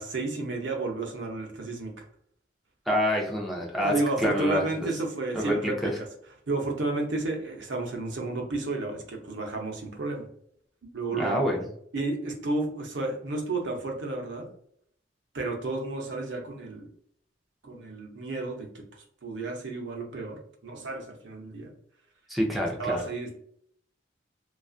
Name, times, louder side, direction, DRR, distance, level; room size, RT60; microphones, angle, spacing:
voice 1, 0.0-2.1 3.8-6.1 6.5-10.3 10.8-11.4 11.9-14.5 15.3-16.9 17.6-21.7 22.8-23.4, right 2 dB, 80° right, 2 dB, 0.6 m, -32 dB
voice 2, 2.9-4.9 5.3-5.9 11.2-11.7 22.3-23.0, equal, ahead, -2 dB, 0.4 m, -27 dB
2.5 x 2.3 x 2.3 m, 0.66 s
head